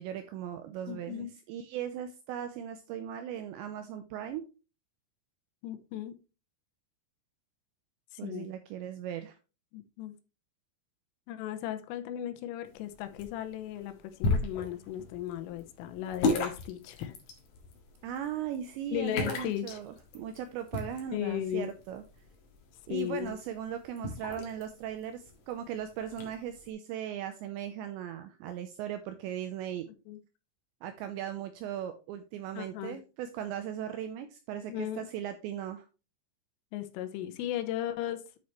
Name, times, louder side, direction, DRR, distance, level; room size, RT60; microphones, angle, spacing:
voice 1, 0.0-4.5 8.2-9.4 18.0-22.0 22.9-29.9 30.8-35.9, right 10 dB, 90° right, 2.6 m, -38 dB
voice 2, 0.9-1.3 5.6-6.2 8.1-8.5 9.7-10.2 11.3-14.0 14.2-17.2 18.9-19.8 21.1-21.7 22.9-23.4 30.1-30.2 32.6-33.0 34.5-35.1 36.7-38.2, left 11 dB, 80° left, 3.4 m, -36 dB
sound 1, 12.7-26.7, left 3 dB, 55° left, 2.5 m, -37 dB
9.5 x 6.4 x 3.1 m
omnidirectional pair, 5.9 m